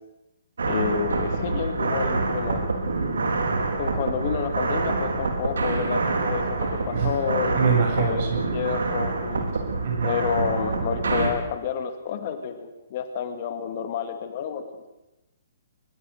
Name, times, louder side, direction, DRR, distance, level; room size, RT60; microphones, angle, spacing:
voice 1, 0.6-2.7 3.7-9.5 10.0-14.9, left 7 dB, 40° left, 8 dB, 2.3 m, -30 dB
sound 1, 0.6-11.3, right 3 dB, 65° right, 3.8 m, -26 dB
voice 2, 7.5-8.4 9.8-10.1, right 6 dB, 45° right, 2 dB, 7.5 m, -24 dB
23.5 x 21.5 x 6.7 m, 0.97 s
figure-of-eight pair, 130°, 0 cm